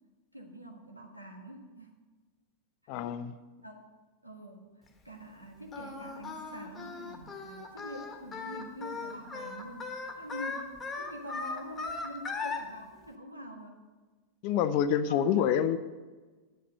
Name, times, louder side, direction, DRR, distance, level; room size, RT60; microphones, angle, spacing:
voice 1, 0.3-1.9 2.8-3.0 3.6-3.9 4.2-9.9 10.2-13.8 15.1-15.5, equal, 85° right, 2 dB, 1.5 m, -45 dB
voice 2, 2.9-3.3 14.4-15.8, left 9 dB, 45° left, 12 dB, 0.5 m, -27 dB
Singing, 5.7-12.6, left 4 dB, 15° left, 1.5 m, -38 dB
9.2 x 8.4 x 6.6 m, 1.3 s
figure-of-eight pair, 90°, 0 cm